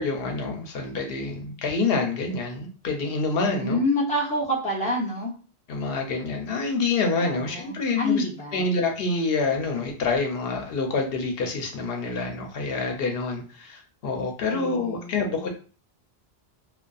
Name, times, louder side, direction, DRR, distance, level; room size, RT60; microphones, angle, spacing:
voice 1, 0.0-3.8 5.7-8.2 8.5-15.5, left 3 dB, 70° left, 3 dB, 0.8 m, -27 dB
voice 2, 3.5-5.3 7.2-8.7 14.5-15.5, left 1 dB, 10° left, -3 dB, 0.5 m, -28 dB
2.5 x 2.3 x 2.3 m, 0.38 s
omnidirectional pair, 1.0 m